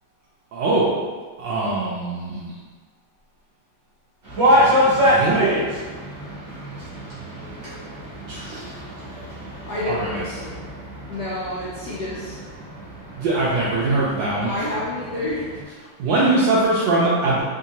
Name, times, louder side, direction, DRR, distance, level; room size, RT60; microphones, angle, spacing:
voice 1, 0.5-1.0 1.4-2.5 4.5-5.6 8.3-8.8 9.9-10.2 13.2-14.5 16.0-17.4, right 2 dB, 75° right, -6 dB, 1.0 m, -22 dB
sound 1, 4.2-15.6, equal, 45° right, 1.0 m, -25 dB
voice 2, 9.7-10.7 11.1-12.4 14.5-15.6, left 1 dB, 75° left, -8 dB, 0.9 m, -29 dB
3.6 x 2.6 x 2.8 m, 1.4 s
omnidirectional pair, 2.4 m